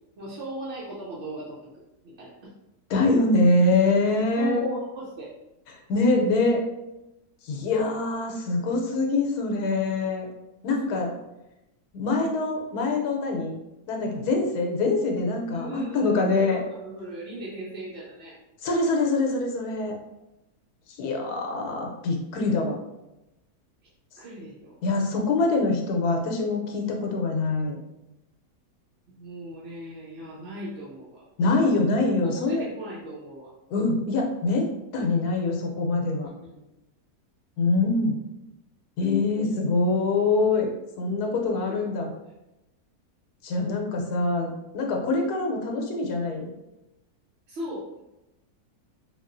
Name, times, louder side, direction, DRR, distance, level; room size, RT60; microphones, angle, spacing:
voice 1, 0.2-1.6 2.0-2.3 4.4-5.3 10.8-11.0 15.5-18.4 24.2-24.8 29.1-31.2 32.2-33.5 36.5-36.6 47.5-48.0, right 1 dB, 60° right, -7 dB, 0.7 m, -37 dB
voice 2, 2.9-4.7 5.9-6.6 7.4-10.3 10.6-11.1 11.9-13.5 13.9-15.7 15.9-16.6 18.6-19.9 21.0-22.8 24.8-27.8 31.4-32.6 33.7-36.3 37.6-38.2 39.0-40.7 41.0-42.1 43.4-46.5, left 3 dB, 85° left, 1 dB, 1.2 m, -24 dB
3.5 x 2.3 x 2.5 m, 0.93 s
omnidirectional pair, 1.6 m